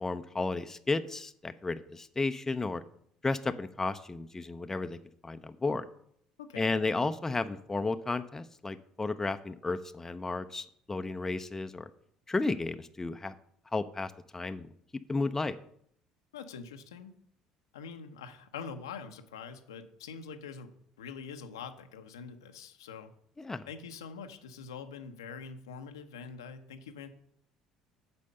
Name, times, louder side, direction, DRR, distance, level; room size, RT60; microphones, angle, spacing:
voice 1, 0.0-2.8 3.2-5.0 5.2-5.9 6.6-11.9 12.3-13.3 13.7-14.7 15.1-15.6 23.4-23.7, left 3 dB, 20° left, 10 dB, 0.6 m, -33 dB
voice 2, 6.4-6.8 16.3-17.2 17.7-23.1 23.7-27.1, left 6 dB, 85° left, 7 dB, 0.7 m, -44 dB
8.5 x 4.3 x 6.6 m, 0.68 s
hypercardioid pair, 60°, 2 cm